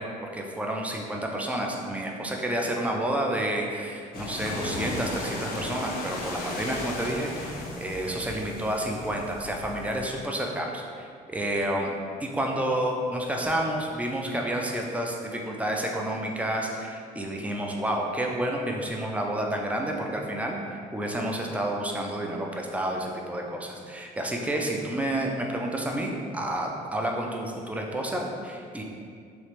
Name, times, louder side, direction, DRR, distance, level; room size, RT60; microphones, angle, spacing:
voice 1, 0.0-11.9 12.2-28.8, right 1 dB, 10° right, 0 dB, 0.3 m, -30 dB
sound 1, 4.1-10.1, left 2 dB, 60° left, 0.5 m, -36 dB
3.1 x 2.4 x 3.0 m, 2.2 s
cardioid pair, 110°, 17 cm